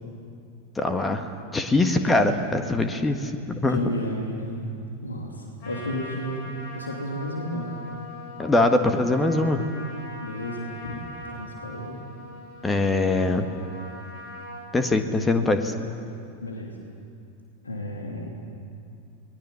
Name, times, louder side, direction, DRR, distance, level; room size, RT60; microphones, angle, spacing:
voice 1, 0.7-3.8 8.4-9.7 12.6-13.5 14.7-15.7, left 2 dB, 15° left, 7 dB, 1.6 m, -23 dB
voice 2, 3.7-4.7 5.0-6.5 6.7-7.8 10.2-12.0 16.4-16.8 17.6-18.3, equal, 75° left, 0 dB, 2.9 m, -33 dB
Trumpet, 5.6-14.7, left 1 dB, 50° left, 7.0 m, -41 dB
28.5 x 20.5 x 7.1 m, 2.6 s
figure-of-eight pair, 90°, 0 cm